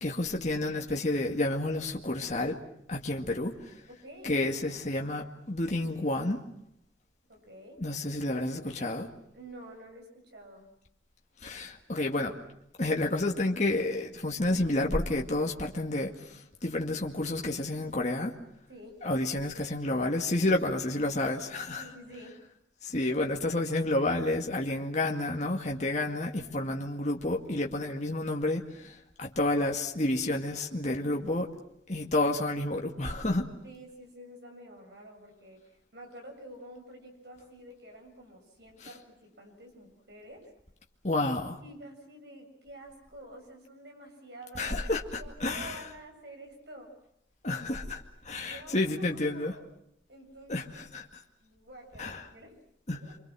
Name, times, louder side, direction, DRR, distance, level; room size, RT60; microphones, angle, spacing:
voice 1, 0.0-2.6 2.9-3.8 4.2-6.4 7.8-9.1 11.4-12.4 12.8-18.4 19.0-21.9 22.8-31.5 31.9-33.5 41.0-41.6 44.6-45.8 47.4-49.5 50.5-51.0 52.0-52.2 52.9-53.0, left 2 dB, 40° left, 1 dB, 2.1 m, -30 dB
voice 2, 4.0-4.4 7.3-7.8 9.3-10.7 18.7-19.1 21.8-22.4 33.6-40.5 41.6-46.9 48.4-49.6 50.1-50.9 51.4-52.5 52.9-53.1, right 1 dB, 60° right, 2 dB, 7.5 m, -49 dB
28.0 x 25.5 x 6.3 m, 0.77 s
head